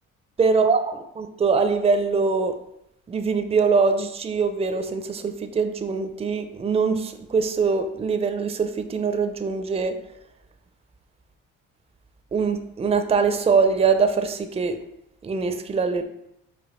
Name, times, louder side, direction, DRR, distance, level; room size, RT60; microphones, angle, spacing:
voice 1, 0.4-2.5 3.1-10.0 12.3-14.8 15.2-16.0, right 5 dB, 20° right, 8 dB, 0.4 m, -23 dB
5.0 x 2.5 x 4.1 m, 0.80 s
cardioid pair, 90°, 30 cm